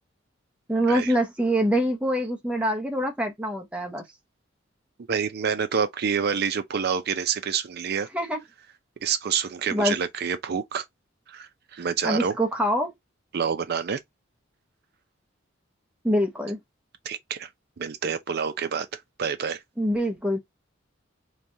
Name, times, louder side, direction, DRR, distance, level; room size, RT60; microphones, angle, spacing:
voice 1, 0.7-4.0 8.1-8.4 9.7-9.9 12.0-12.9 16.0-16.6 19.8-20.4, equal, 5° right, 0.7 m, -25 dB
voice 2, 5.1-8.1 9.0-10.8 11.3-12.3 13.3-14.0 17.1-17.5 17.8-19.6, right 6 dB, 55° right, 0.5 m, -27 dB
3.1 x 2.3 x 2.6 m
head